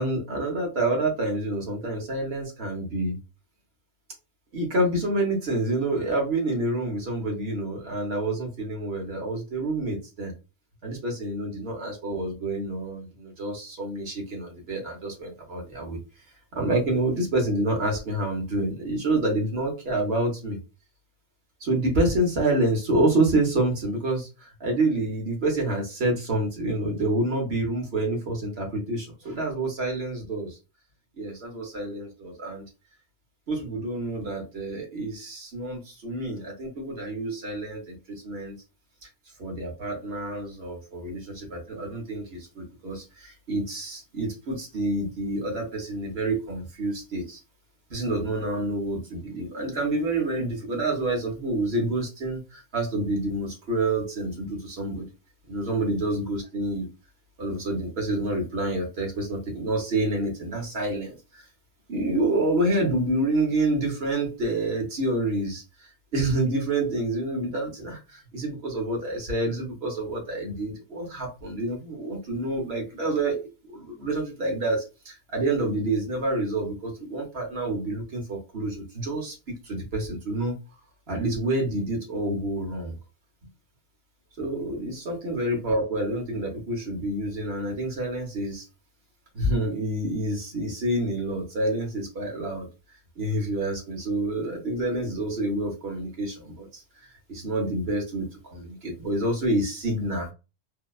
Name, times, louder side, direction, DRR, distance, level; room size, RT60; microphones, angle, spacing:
voice 1, 0.0-3.2 4.5-10.3 10.8-16.0 16.5-20.6 21.6-30.6 31.2-32.6 33.5-38.6 39.0-39.1 39.4-47.4 47.9-55.1 55.5-56.9 57.4-61.5 61.9-73.4 73.7-79.3 79.6-80.5 81.1-83.0 84.4-88.7 89.3-92.7 93.2-100.3, right 2 dB, 65° right, 1 dB, 1.1 m, -28 dB
2.8 x 2.1 x 2.3 m, 0.29 s
omnidirectional pair, 1.1 m